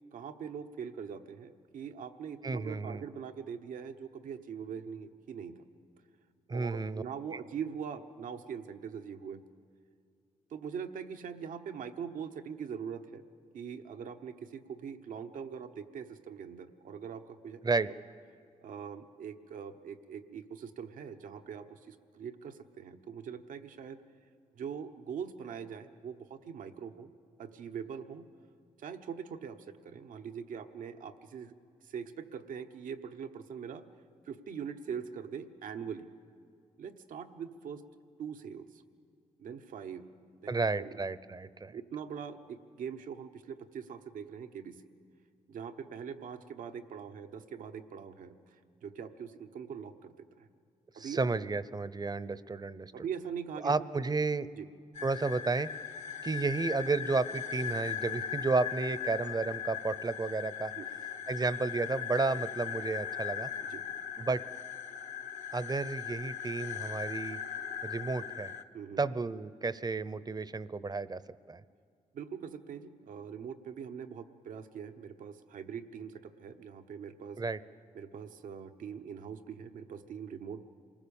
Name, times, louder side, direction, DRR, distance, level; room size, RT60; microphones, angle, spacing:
voice 1, 0.1-5.6 6.5-9.4 10.5-13.2 13.5-17.9 18.6-24.0 24.6-27.1 27.4-28.3 28.8-31.5 31.8-33.9 34.2-36.1 36.8-37.8 38.2-38.8 39.4-40.1 40.4-41.0 41.7-44.9 45.5-48.4 48.8-50.5 50.9-51.2 52.9-53.7 54.6-54.7 60.7-60.9 63.7-63.9 68.7-69.0 72.1-77.4 77.9-80.6, right 7 dB, 80° right, 7 dB, 1.1 m, -42 dB
voice 2, 2.4-3.0 6.5-7.0 17.6-17.9 40.5-41.7 51.0-52.9 53.6-54.5 55.0-55.7 56.2-60.7 61.3-63.5 64.2-64.4 65.5-67.4 67.8-68.5 69.0-71.2 71.5-71.6 77.4-77.6, right 3 dB, 30° right, 16 dB, 0.8 m, -32 dB
sound 1, 54.9-68.6, left 8 dB, 65° left, 1.1 m, -39 dB
27.5 x 19.5 x 7.2 m, 2.2 s
cardioid pair, 60°, 14 cm